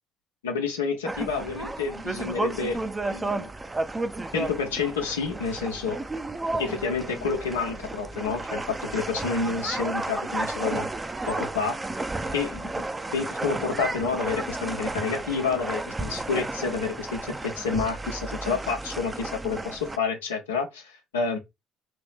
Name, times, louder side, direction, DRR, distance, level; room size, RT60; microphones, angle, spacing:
voice 1, 0.4-2.8 3.1-3.5 4.3-6.0 6.6-10.9 11.3-11.8 12.3-12.9 13.1-21.4, left 5 dB, 90° left, 0.9 m, -29 dB
sound 1, 1.0-20.0, right 2 dB, 20° right, 0.5 m, -32 dB
3.4 x 2.9 x 3.4 m
hypercardioid pair, 55°, 0 cm